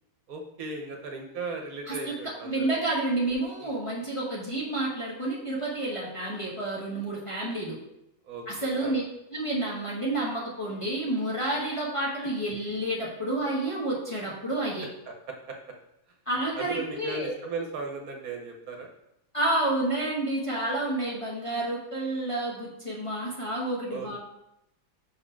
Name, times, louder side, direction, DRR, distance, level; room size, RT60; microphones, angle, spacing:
voice 1, 0.3-2.7 3.6-3.7 8.2-9.0 15.1-15.7 16.5-18.9 23.9-24.2, right 3 dB, 65° right, 3 dB, 1.2 m, -37 dB
voice 2, 2.4-7.8 8.5-9.0 9.3-14.9 16.3-17.3 19.3-24.2, right 1 dB, 20° left, -5 dB, 1.0 m, -29 dB
5.6 x 4.2 x 4.5 m, 0.83 s
omnidirectional pair, 1.7 m